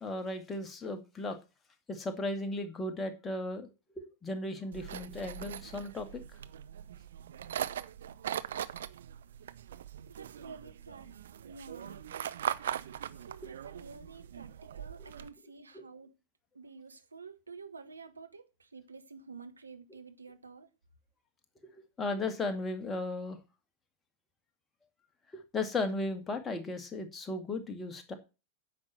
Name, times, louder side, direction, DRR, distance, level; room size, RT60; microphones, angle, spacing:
voice 1, 0.0-1.4 1.9-3.7 4.0-6.2 13.4-13.5 15.0-15.1 21.7-23.4 25.3-28.1, left 2 dB, 15° left, 2.1 m, -36 dB
sound 1, 4.7-15.3, right 10 dB, 60° right, 0.7 m, -40 dB
voice 2, 10.1-12.0 13.1-16.1 16.5-20.7, right 4 dB, 75° right, 1.6 m, -50 dB
9.6 x 6.1 x 7.6 m
figure-of-eight pair, 90°, 0 cm